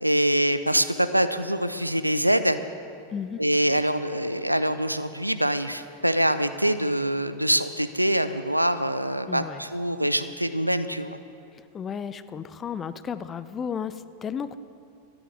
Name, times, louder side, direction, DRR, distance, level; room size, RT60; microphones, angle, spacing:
voice 1, 0.0-2.6 3.4-11.2, equal, 90° right, 11 dB, 0.6 m, -24 dB
voice 2, 3.1-3.4 9.3-9.6 11.5-14.6, left 7 dB, 25° left, 13 dB, 0.6 m, -33 dB
13.5 x 10.0 x 7.7 m, 2.5 s
figure-of-eight pair, 90°, 0 cm